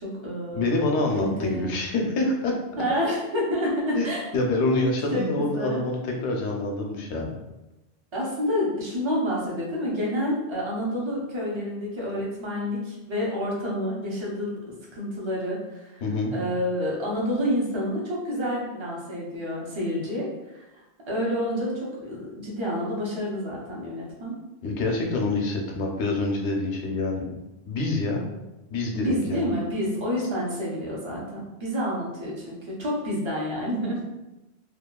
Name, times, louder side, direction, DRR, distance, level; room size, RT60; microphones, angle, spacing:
voice 1, 0.0-0.9 1.1-1.7 2.8-4.3 4.7-4.8 5.1-5.9 8.1-14.6 14.9-16.0 16.3-20.7 21.1-24.4 28.9-34.0, equal, 35° right, -4 dB, 0.5 m, -29 dB
voice 2, 0.5-2.5 3.9-7.4 16.0-16.3 24.6-27.4 27.7-28.2 28.7-29.4, left 2 dB, 80° left, 0 dB, 0.9 m, -26 dB
2.8 x 2.3 x 2.2 m, 1.0 s
omnidirectional pair, 1.2 m